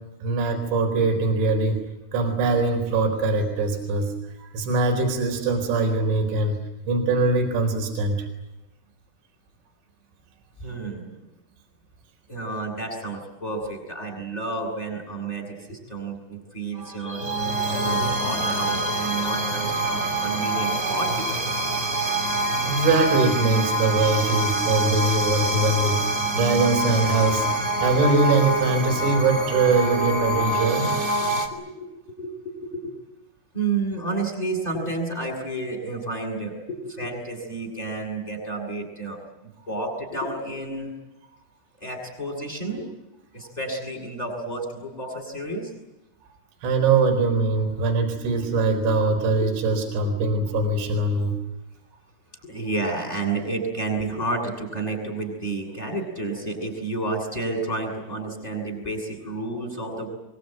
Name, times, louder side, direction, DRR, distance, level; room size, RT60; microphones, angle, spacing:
voice 1, 0.2-1.8 2.1-4.1 4.4-6.6 6.8-8.3 22.6-30.9 46.6-51.3, right 3 dB, 65° right, 4 dB, 6.4 m, -22 dB
voice 2, 10.6-11.2 12.3-17.2 17.7-21.6 31.5-31.9 32.2-32.9 33.5-39.2 39.7-40.9 41.8-42.9 43.3-45.7 52.4-60.1, right 2 dB, 5° left, 4 dB, 7.3 m, -30 dB
sound 1, 16.8-31.5, right 1 dB, 25° right, 1.4 m, -25 dB
24.0 x 24.0 x 9.2 m, 0.96 s
omnidirectional pair, 6.0 m